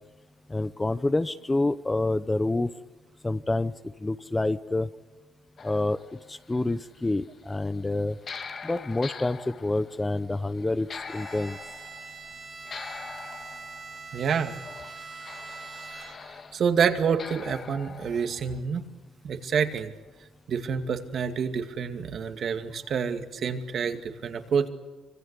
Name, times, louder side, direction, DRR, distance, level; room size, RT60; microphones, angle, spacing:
voice 1, 0.5-2.7 3.2-3.7 4.0-4.9 5.6-6.0 6.3-8.2 8.6-11.6, left 2 dB, 15° left, 13 dB, 0.7 m, -27 dB
sound 1, 5.6-7.5 7.9-16.6 17.2-18.6, left 5 dB, 40° left, 1.9 m, -43 dB
Bowed string instrument, 11.0-16.5, right 4 dB, 25° right, 3.5 m, -43 dB
voice 2, 14.1-14.5 16.5-18.8 19.2-19.9 20.5-24.7, right 6 dB, 50° right, 7 dB, 2.3 m, -27 dB
25.5 x 24.5 x 8.3 m, 1.2 s
cardioid pair, 120°, 0 cm